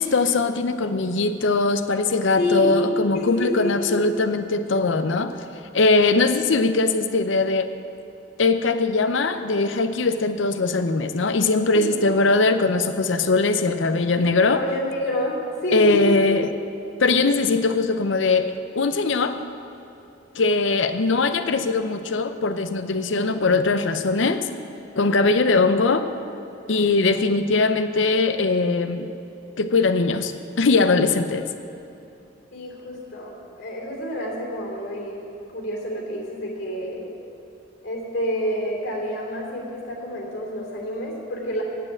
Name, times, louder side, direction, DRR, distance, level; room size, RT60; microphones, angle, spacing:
voice 1, 0.0-5.3 5.7-7.7 8.4-14.6 15.7-16.5 17.0-19.4 20.4-24.4 25.0-26.1 26.7-29.1 29.6-30.3 30.6-31.5, left 3 dB, 75° left, 9 dB, 0.6 m, -21 dB
voice 2, 2.4-2.7 3.1-3.9 11.7-11.9 14.5-16.1 32.5-35.2 35.5-37.1 37.8-41.6, left 1 dB, 55° left, -2 dB, 3.2 m, -28 dB
8.6 x 7.5 x 8.6 m, 2.8 s
head